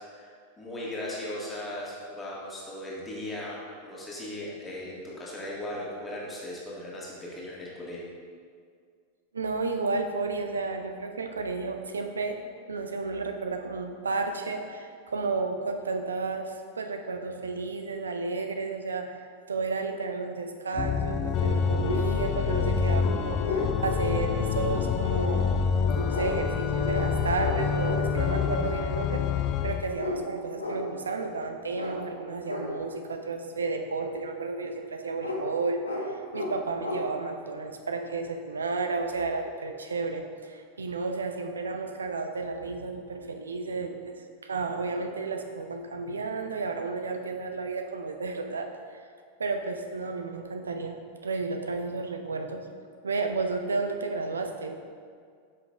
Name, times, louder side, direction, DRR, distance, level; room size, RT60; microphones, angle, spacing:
voice 1, 0.0-8.0, left 1 dB, 15° left, -6 dB, 1.6 m, -38 dB
voice 2, 9.3-12.4 12.7-25.7 26.0-49.0 49.4-51.0 51.2-52.7 53.0-54.8, right 3 dB, 70° right, 5 dB, 0.5 m, -32 dB
Organ, 20.7-30.0, left 6 dB, 35° left, 0.3 m, -27 dB
sound 1, 21.8-22.1 22.7-22.8 23.0-23.7 25.1-25.3 26.1-26.3 26.9-27.1 27.4-27.6 27.8-28.4 30.0-30.2 30.6-30.8 31.7-31.9 32.4-32.6 35.2-35.4 35.8-36.0 36.3-36.5 36.8-37.0, left 3 dB, 80° left, 0.9 m, -33 dB
8.2 x 5.8 x 2.3 m, 2.1 s
figure-of-eight pair, 90°, 0 cm